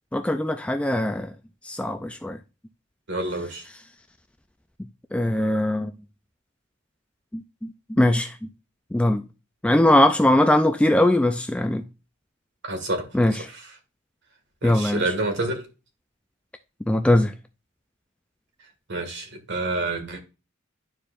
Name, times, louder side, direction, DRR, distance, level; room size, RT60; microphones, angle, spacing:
voice 1, 0.1-1.3 1.6-2.4 5.1-5.9 7.3-7.7 8.0-8.3 8.9-9.2 9.6-11.8 13.1-13.4 14.6-15.0 16.9-17.3, left 1 dB, 5° left, 0.3 m, -20 dB
voice 2, 3.1-3.6 12.6-13.1 13.5-13.7 14.6-15.7 18.9-20.2, right 2 dB, 55° right, 1.8 m, -28 dB
11.5 x 4.6 x 2.4 m
head